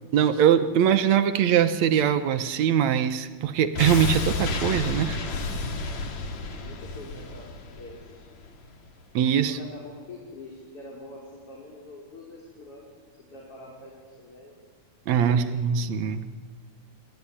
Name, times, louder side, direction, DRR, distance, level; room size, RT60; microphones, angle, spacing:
voice 1, 0.1-5.2 9.1-9.6 15.1-16.3, right 9 dB, 65° right, 11 dB, 2.2 m, -22 dB
sound 1, 3.7-8.7 9.0-9.1, left 3 dB, 65° left, 3.6 m, -31 dB
voice 2, 6.5-7.5 7.8-8.4 9.4-14.6 15.2-15.6, left 2 dB, 45° left, -3 dB, 6.2 m, -45 dB
29.0 x 19.5 x 9.9 m, 1.5 s
omnidirectional pair, 3.6 m